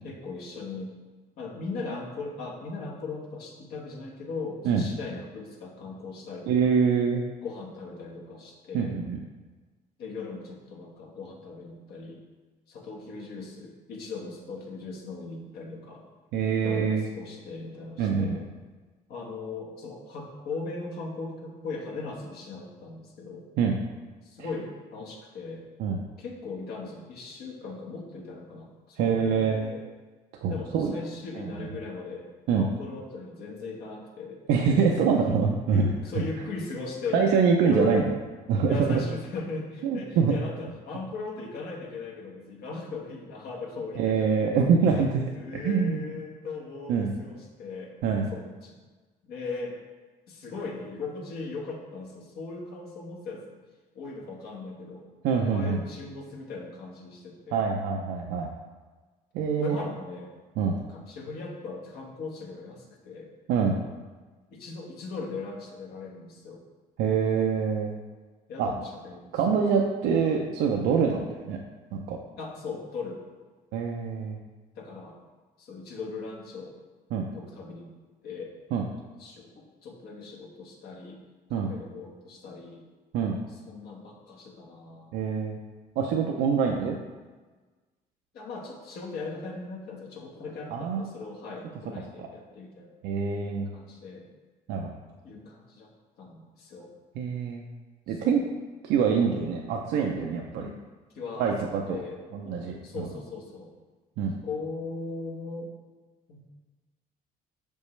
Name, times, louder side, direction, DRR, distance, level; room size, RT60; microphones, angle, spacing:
voice 1, 0.0-0.9 1.4-6.7 7.4-9.0 10.0-12.2 12.7-16.1 16.6-18.4 19.1-23.5 24.2-25.6 26.2-29.8 30.5-32.3 32.5-34.4 35.7-37.3 37.6-38.1 38.7-44.3 44.9-45.0 45.3-47.9 48.3-48.8 49.2-49.8 50.3-53.6 53.9-55.1 55.4-57.6 59.6-60.3 60.9-63.3 64.5-66.6 68.5-69.6 72.4-73.2 74.7-75.2 75.6-76.8 77.3-77.9 78.2-78.6 79.2-81.2 81.5-82.8 83.5-85.1 88.3-92.9 93.7-94.3 95.2-95.9 96.2-96.9 98.1-98.5 100.6-100.8 101.1-101.5 101.9-103.7 104.4-105.7 106.3-106.4, left 3 dB, 70° left, -1 dB, 1.3 m, -38 dB
voice 2, 6.5-7.2 8.7-9.2 16.3-17.0 18.0-18.4 23.6-23.8 25.8-26.0 29.0-29.6 30.4-30.9 31.6-31.7 32.5-32.7 34.5-35.9 37.1-38.1 38.5-39.0 39.8-40.4 44.0-45.2 45.5-46.0 46.9-47.1 48.0-48.3 55.2-55.8 57.5-58.5 59.3-59.8 60.6-60.8 63.5-63.8 67.0-67.9 68.6-68.7 69.3-71.6 71.9-72.2 73.7-74.4 77.1-77.3 78.7-78.9 81.5-81.7 83.1-83.4 85.1-85.6 86.0-87.0 90.7-91.0 92.2-92.3 93.0-93.7 94.7-94.9 97.2-97.6 98.1-98.4 98.8-100.7 101.4-102.0 102.3-103.1 104.2-104.3, right 6 dB, 85° right, 1 dB, 0.6 m, -25 dB
6.4 x 5.3 x 3.2 m, 1.3 s
cardioid pair, 110°, 17 cm